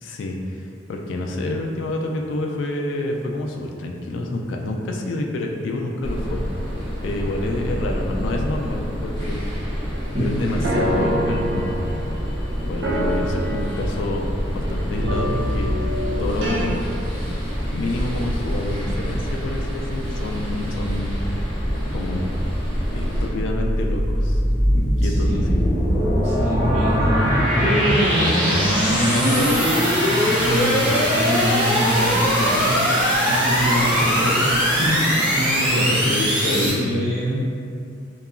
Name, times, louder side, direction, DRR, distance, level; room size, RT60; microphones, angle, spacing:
voice 1, 0.0-6.4 7.0-9.5 10.2-11.8 12.6-16.8 17.7-21.3 21.9-22.3 22.9-24.4 24.7-25.6 33.7-33.9 35.7-36.9, left 2 dB, 80° left, 1 dB, 0.3 m, -28 dB
sound 1, 6.0-23.3, equal, 30° left, 1.2 m, -27 dB
voice 2, 10.1-10.6 25.0-25.6 26.2-37.5, equal, 40° right, -11 dB, 0.9 m, -25 dB
sound 2, 10.6-12.3 12.8-14.3 15.0-16.7, equal, 75° right, 0.4 m, -26 dB
sound 3, 22.7-36.7, equal, 5° right, 0.7 m, -20 dB
2.8 x 2.2 x 2.4 m, 2.4 s
head